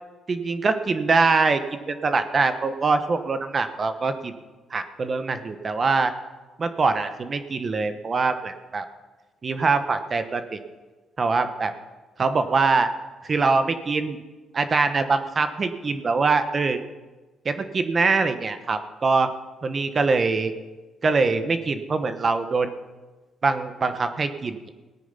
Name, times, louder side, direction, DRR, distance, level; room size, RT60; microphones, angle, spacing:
voice 1, 0.3-4.3 4.7-6.1 6.6-8.8 9.4-10.6 11.2-11.7 12.2-12.9 13.2-14.2 14.5-16.8 17.4-19.3 19.6-20.5 21.0-22.7 23.4-24.7, right 4 dB, 40° right, 9 dB, 1.2 m, -23 dB
17.5 x 9.2 x 5.7 m, 1.2 s
cardioid pair, 90°, 0 cm